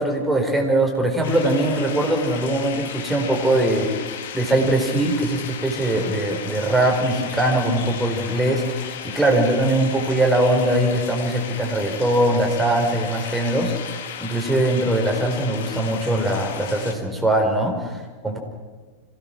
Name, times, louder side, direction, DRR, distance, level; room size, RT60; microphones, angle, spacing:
voice 1, 0.0-3.9 4.3-18.4, right 1 dB, 5° right, 1 dB, 4.9 m, -21 dB
sound 1, 1.2-16.9, left 8 dB, 55° left, 1.9 m, -35 dB
26.5 x 17.0 x 6.2 m, 1.4 s
figure-of-eight pair, 90°, 0 cm